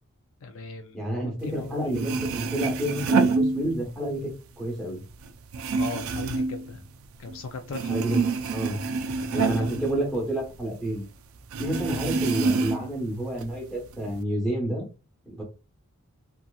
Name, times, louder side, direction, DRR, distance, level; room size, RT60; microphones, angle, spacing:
voice 1, 0.4-2.0 5.8-6.8 7.2-8.2 8.6-8.8 9.2-9.7, left 3 dB, 60° left, 0.4 m, -38 dB
voice 2, 0.9-4.3 4.6-5.0 7.9-8.2 8.5-8.8 9.3-11.0 11.6-14.9 15.2-15.4, right 1 dB, 5° left, 0.9 m, -29 dB
sound 1, 1.6-1.7 1.9-4.1 4.5-7.4 7.7-10.7 11.0-11.1 11.5-13.0 13.4-14.1, right 4 dB, 70° right, 0.3 m, -27 dB
2.8 x 2.4 x 2.2 m
head